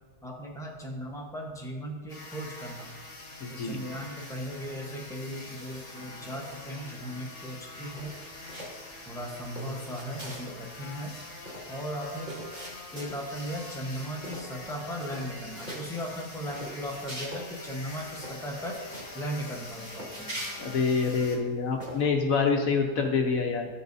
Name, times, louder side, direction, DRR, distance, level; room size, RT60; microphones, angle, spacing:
voice 1, 0.2-2.9 3.5-8.1 9.1-11.1 11.7-12.3 12.9-18.8 19.1-20.4, equal, 5° left, -1 dB, 0.6 m, -37 dB
sound 1, 2.1-21.4, left 2 dB, 90° left, 2.2 m, -44 dB
voice 2, 3.4-3.8 20.6-23.7, left 5 dB, 60° left, 3 dB, 1.1 m, -26 dB
sound 2, 7.9-8.8 9.2-10.6 10.9-11.0 11.2-13.4 13.8-14.0 14.2-14.7 15.0-15.8 16.3-17.4 17.8-17.9 18.2-19.1 19.6-21.3 21.8-22.0, right 1 dB, 25° right, 2.1 m, -42 dB
13.0 x 5.6 x 2.7 m, 1.3 s
omnidirectional pair, 1.8 m